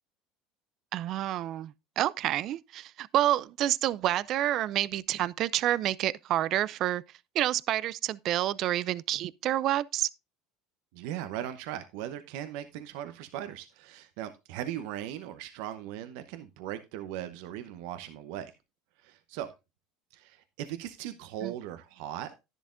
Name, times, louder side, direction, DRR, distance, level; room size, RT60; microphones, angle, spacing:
voice 1, 0.9-7.0 7.3-10.1 21.4-21.5, right 13 dB, 55° right, 0.4 m, -28 dB
voice 2, 10.9-18.5 19.0-19.5 20.1-22.3, right 11 dB, 70° right, 0.9 m, -38 dB
11.0 x 10.5 x 2.5 m
supercardioid pair, 95°, 0 cm